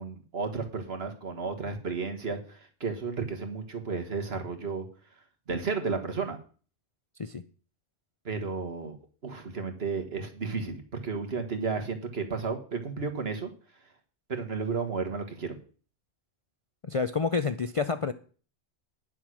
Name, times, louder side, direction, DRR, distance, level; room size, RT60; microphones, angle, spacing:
voice 1, 0.0-4.9 5.5-6.4 8.3-9.0 9.2-13.5 14.3-15.6, right 4 dB, 60° right, 5 dB, 1.9 m, -33 dB
voice 2, 16.9-18.1, left 4 dB, 45° left, 10 dB, 0.4 m, -28 dB
9.9 x 7.3 x 6.3 m, 0.40 s
omnidirectional pair, 1.2 m